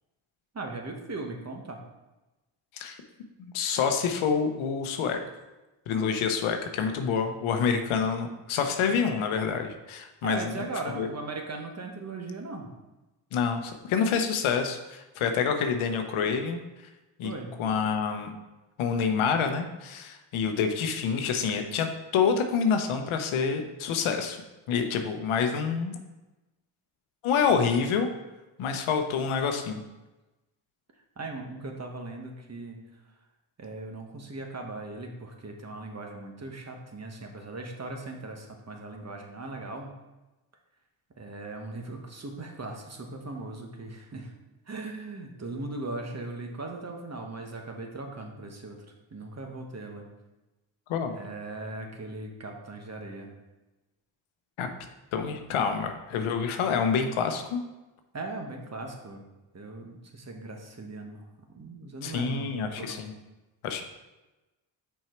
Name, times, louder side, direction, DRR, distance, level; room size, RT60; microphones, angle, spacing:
voice 1, 0.5-1.8 10.2-12.7 17.2-17.5 27.5-27.8 31.2-32.8 33.6-40.0 41.2-44.3 44.7-48.8 49.1-50.1 51.1-53.3 58.1-59.3 59.5-63.0, right 2 dB, 35° right, 2 dB, 1.2 m, -38 dB
voice 2, 3.4-5.2 5.9-10.5 11.0-11.1 13.3-16.6 17.2-17.3 17.6-18.3 18.8-24.4 24.7-25.9 27.2-28.1 28.6-29.8 50.9-51.1 54.6-54.7 55.1-57.6 62.0-63.1 63.6-63.8, left 6 dB, 85° left, 6 dB, 0.8 m, -27 dB
5.9 x 4.6 x 4.4 m, 1.1 s
cardioid pair, 65°, 48 cm